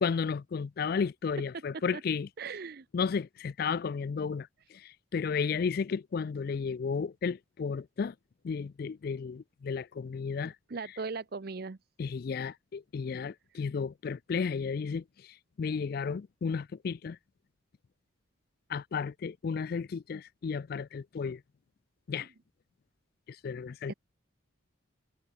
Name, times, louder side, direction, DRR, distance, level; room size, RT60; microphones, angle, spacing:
voice 1, 0.0-2.3 2.9-8.1 8.4-10.5 12.0-17.2 18.7-21.4 22.1-22.3 23.3-23.9, left 5 dB, 45° left, 0.3 m, -33 dB
voice 2, 2.4-2.8 10.7-11.8 23.9-24.0, right 4 dB, 50° right, 0.6 m, -38 dB
head